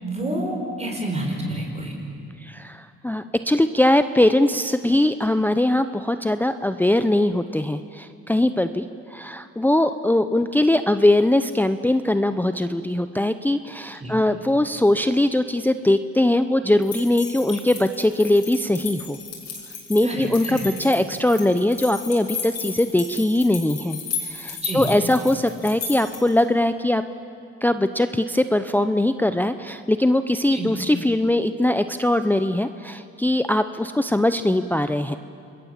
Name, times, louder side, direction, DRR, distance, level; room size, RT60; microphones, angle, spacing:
voice 1, 0.0-1.9 14.0-14.1 20.0-20.6 24.6-24.9 30.5-30.7, right 1 dB, 20° right, 1 dB, 5.0 m, -28 dB
voice 2, 2.4-19.2 19.9-27.0 27.6-35.2, left 1 dB, 5° left, 10 dB, 0.7 m, -21 dB
sound 1, 16.8-26.4, left 6 dB, 60° left, 6.3 m, -34 dB
28.0 x 21.5 x 7.4 m, 2.5 s
cardioid pair, 90°, 30 cm